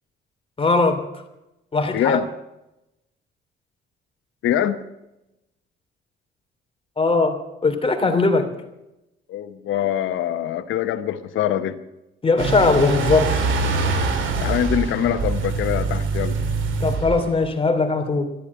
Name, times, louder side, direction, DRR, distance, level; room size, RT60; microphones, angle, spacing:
voice 1, 0.6-1.0 1.7-2.2 7.0-8.5 12.2-13.4 16.8-18.3, left 3 dB, 30° left, 5 dB, 2.9 m, -20 dB
voice 2, 1.9-2.3 4.4-4.8 9.3-11.8 14.4-16.4, left 10 dB, 80° left, 8 dB, 0.9 m, -23 dB
sound 1, 12.4-17.5, right 4 dB, 75° right, 2.7 m, -24 dB
13.5 x 12.0 x 8.1 m, 0.91 s
cardioid pair, 90°, 20 cm